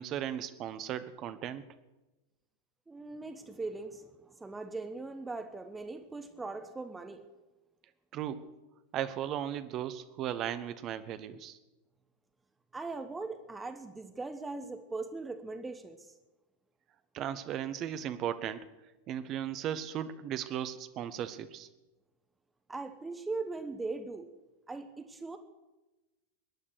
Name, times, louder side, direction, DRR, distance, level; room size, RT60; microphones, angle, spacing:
voice 1, 0.0-1.6 8.1-8.4 8.9-11.6 17.1-18.7 19.1-21.7, right 10 dB, 35° right, 12 dB, 1.0 m, -36 dB
voice 2, 2.9-7.3 12.7-16.1 22.7-24.3 24.7-25.4, right 3 dB, 10° right, 7 dB, 1.1 m, -40 dB
22.5 x 9.9 x 6.4 m, 1.1 s
figure-of-eight pair, 90°, 0 cm